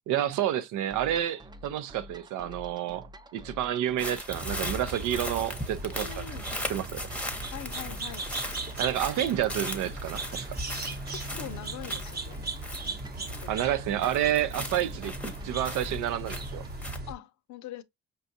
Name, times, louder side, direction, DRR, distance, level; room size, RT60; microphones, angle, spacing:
voice 1, 0.1-3.1 3.3-6.3 6.7-7.1 8.8-10.5 13.5-16.6, right 11 dB, 85° right, 0.5 m, -29 dB
sound 1, 0.9-16.8, equal, 15° right, 0.4 m, -48 dB
sound 2, 4.0-13.7 14.0-17.0, left 1 dB, 5° left, 0.8 m, -39 dB
sound 3, 4.3-17.1, right 2 dB, 30° right, 0.8 m, -38 dB
voice 2, 5.9-6.5 7.5-8.3 11.1-12.5 13.2-13.7 17.1-17.8, left 11 dB, 70° left, 0.5 m, -43 dB
5.2 x 2.3 x 2.6 m
cardioid pair, 90°, 30 cm